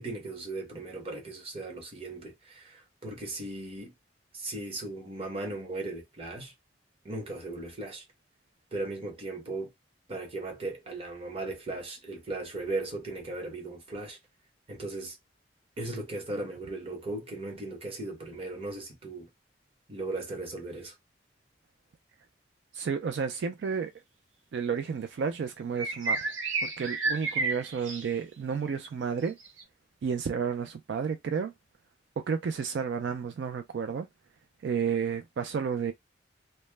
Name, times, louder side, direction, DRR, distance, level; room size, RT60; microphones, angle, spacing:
voice 1, 0.0-3.9 4.3-6.5 7.0-8.0 8.7-9.7 10.1-14.2 14.7-15.2 15.8-19.3 19.9-21.0, right 2 dB, 30° right, 0.8 m, -37 dB
voice 2, 22.7-23.9 24.5-26.4 26.6-29.4 30.0-31.5 32.2-34.1 34.6-35.9, right 6 dB, 65° right, 0.3 m, -31 dB
sound 1, 25.8-28.1 29.4-29.6, right 3 dB, 90° right, 0.9 m, -31 dB
2.1 x 2.1 x 3.2 m
head